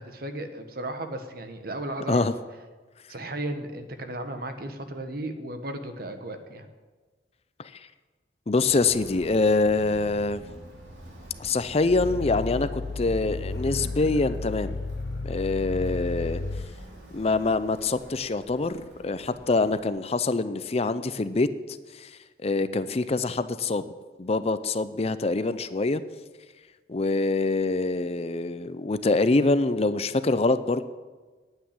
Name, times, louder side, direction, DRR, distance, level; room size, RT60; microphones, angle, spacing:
voice 1, 0.0-2.3 3.1-6.7 15.8-16.0, right 1 dB, 60° right, 8 dB, 1.3 m, -35 dB
voice 2, 8.5-10.4 11.4-14.8 15.2-16.4 17.1-21.5 21.9-22.1 22.4-23.9 24.2-26.0 26.9-30.8, left 3 dB, 35° left, 13 dB, 0.5 m, -25 dB
Walk footsteps, 8.5-19.8, equal, 85° right, 3.2 m, -47 dB
Growling, 11.8-16.7, left 3 dB, 75° left, 0.7 m, -33 dB
9.5 x 8.9 x 10.0 m, 1.4 s
head